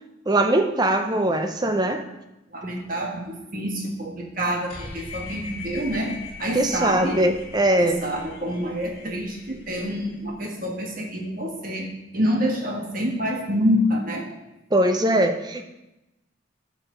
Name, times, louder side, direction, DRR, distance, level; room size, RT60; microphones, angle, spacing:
voice 1, 0.3-2.1 6.5-8.0 14.7-15.6, right 1 dB, 20° right, 6 dB, 0.6 m, -21 dB
voice 2, 2.5-6.1 6.4-7.2 7.8-14.3 15.1-15.2, equal, 40° right, 1 dB, 1.5 m, -27 dB
sound 1, 4.7-10.3, left 3 dB, 30° left, 3.2 m, -40 dB
11.0 x 6.1 x 3.8 m, 0.95 s
head